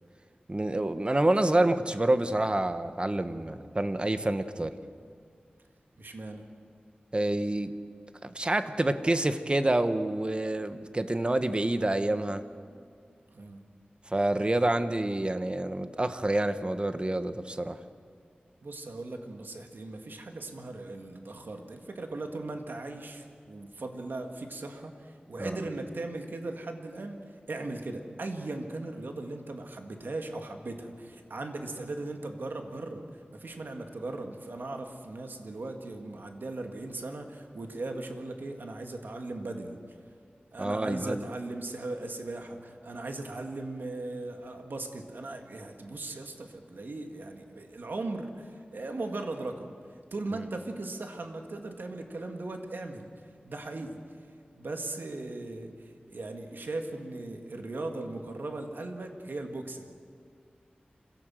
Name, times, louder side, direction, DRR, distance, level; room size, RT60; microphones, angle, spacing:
voice 1, 0.5-4.7 7.1-7.7 8.2-12.4 14.1-17.8 25.4-25.6 40.6-41.2, right 1 dB, 30° right, 10 dB, 1.2 m, -27 dB
voice 2, 6.0-6.5 13.3-13.7 18.6-39.8 40.5-49.8 50.1-53.1 53.4-54.0 54.5-60.0, right 2 dB, 80° right, 4 dB, 2.2 m, -38 dB
26.0 x 17.5 x 7.7 m, 2.2 s
wide cardioid pair, 70°, 3 cm